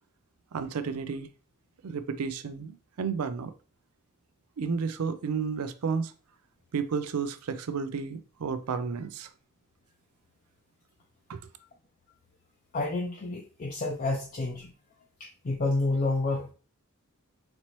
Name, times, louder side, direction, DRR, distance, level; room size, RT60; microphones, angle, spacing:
voice 1, 0.5-1.3 1.8-3.5 4.6-6.1 6.7-9.3 11.3-11.4, right 5 dB, 85° right, 0.4 m, -32 dB
voice 2, 12.7-14.7 15.2-16.5, left 2 dB, 40° left, 0.5 m, -29 dB
4.2 x 3.0 x 3.0 m
head